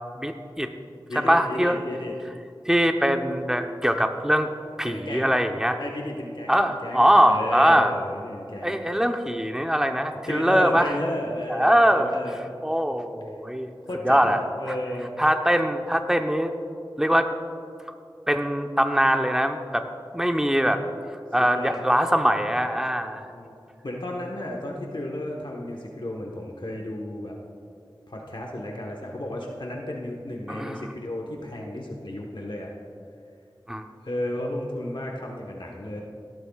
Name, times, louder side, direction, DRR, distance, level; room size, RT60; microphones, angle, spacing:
voice 1, 0.2-0.7 1.1-1.8 2.6-4.5 4.8-5.8 6.5-7.9 8.6-10.9 11.5-12.1 12.6-13.7 14.0-14.4 14.7-14.8 15.2-16.5 17.0-17.3 18.3-19.8 20.1-20.8 21.3-23.3 30.5-30.8 33.7-33.9, equal, 5° right, 5 dB, 0.9 m, -22 dB
voice 2, 1.1-2.1 4.8-5.4 5.8-8.8 10.3-12.5 13.9-15.2 21.5-21.8 23.3-23.5 23.8-27.4 28.1-32.7 34.0-36.0, left 1 dB, 65° left, -1 dB, 1.3 m, -33 dB
17.0 x 13.0 x 2.4 m, 2.4 s
wide cardioid pair, 45°, 9 cm